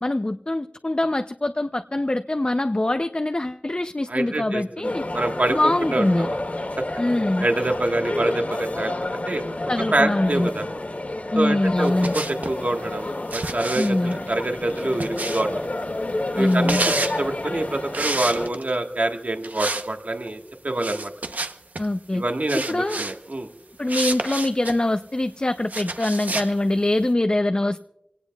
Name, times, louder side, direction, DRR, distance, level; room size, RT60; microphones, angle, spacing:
voice 1, 0.0-5.0 5.5-6.3 7.0-7.5 9.7-10.5 11.3-12.1 13.8-14.2 16.4-16.9 21.8-22.2 22.5-23.0 23.8-27.8, left 1 dB, 40° left, 8 dB, 0.5 m, -23 dB
voice 2, 4.1-6.4 6.8-6.9 7.4-9.4 9.9-10.6 11.4-15.6 16.3-20.4 20.6-21.1 22.1-23.5, right 2 dB, 70° right, 3 dB, 1.4 m, -26 dB
sound 1, 4.8-18.5, left 2 dB, 75° left, 2.1 m, -30 dB
sound 2, 11.8-12.6 13.3-15.7 16.4-17.2 17.9-18.8 19.4-19.9 20.1-20.3 20.8-21.9 22.5-23.2 23.9-24.8 25.7-26.5, right 2 dB, 85° right, 0.7 m, -29 dB
26.5 x 18.0 x 2.3 m, 0.88 s
wide cardioid pair, 45°, 3 cm